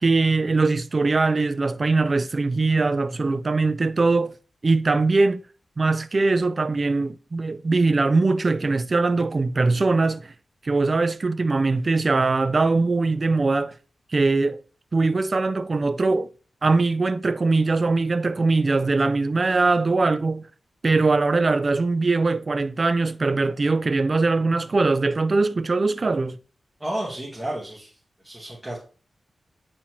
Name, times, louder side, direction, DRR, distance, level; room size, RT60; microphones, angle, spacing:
voice 1, 0.0-4.3 4.6-5.4 5.8-10.3 10.6-13.7 14.1-14.6 14.9-16.3 16.6-20.4 20.8-26.4, right 3 dB, 45° right, 0.5 m, -21 dB
voice 2, 26.8-28.0 28.2-28.8, right 1 dB, 10° right, 2.0 m, -31 dB
8.7 x 4.2 x 3.0 m
cardioid pair, 60°, 0 cm